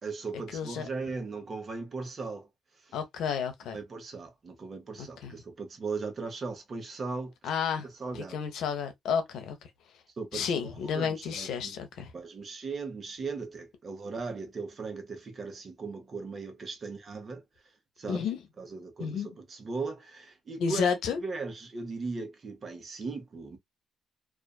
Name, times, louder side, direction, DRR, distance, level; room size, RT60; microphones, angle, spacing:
voice 1, 0.0-2.5 3.7-7.3 8.0-8.4 10.2-11.8 12.1-17.4 18.0-18.2 18.6-20.8 21.2-23.6, right 4 dB, 40° right, 0.9 m, -38 dB
voice 2, 0.5-0.9 2.9-3.8 5.0-5.3 7.4-7.9 8.1-9.6 10.3-12.1 18.1-18.4 19.0-19.3 20.6-21.2, left 6 dB, 80° left, 0.7 m, -31 dB
2.4 x 2.4 x 2.2 m
cardioid pair, 90°, 0 cm